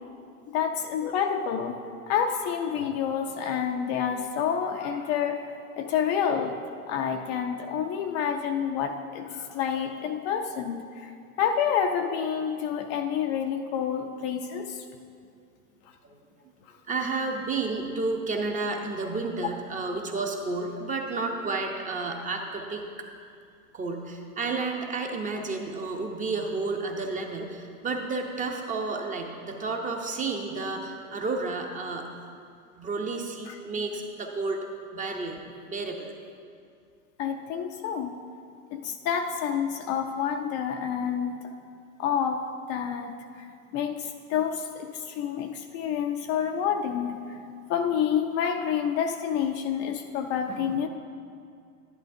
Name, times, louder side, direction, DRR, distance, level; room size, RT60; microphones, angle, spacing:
voice 1, 0.5-1.8 2.1-11.1 11.4-14.8 19.4-19.5 33.5-33.6 37.2-38.2 38.7-41.4 42.0-43.5 43.7-47.4 47.7-50.9, left 8 dB, 35° left, 4 dB, 0.4 m, -28 dB
voice 2, 16.9-22.8 23.7-32.1 32.7-34.7 34.9-35.4 35.7-36.1, right 3 dB, 20° right, 2 dB, 0.6 m, -31 dB
11.0 x 10.5 x 2.6 m, 2.3 s
hypercardioid pair, 120°, 43 cm